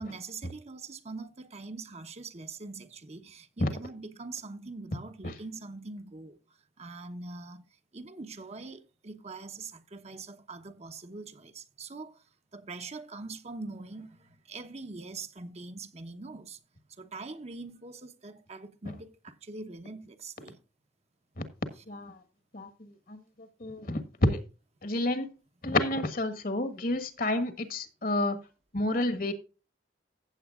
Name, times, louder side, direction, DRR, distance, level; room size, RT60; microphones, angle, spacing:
voice 1, 0.0-6.4 6.8-7.6 7.9-12.3 12.5-16.6 17.0-20.6, right 3 dB, 40° right, 0.9 m, -43 dB
voice 2, 21.9-22.2 22.5-24.4 24.8-25.3 25.6-28.4 28.7-29.3, left 1 dB, 55° left, 1.4 m, -30 dB
15.5 x 7.8 x 2.4 m
head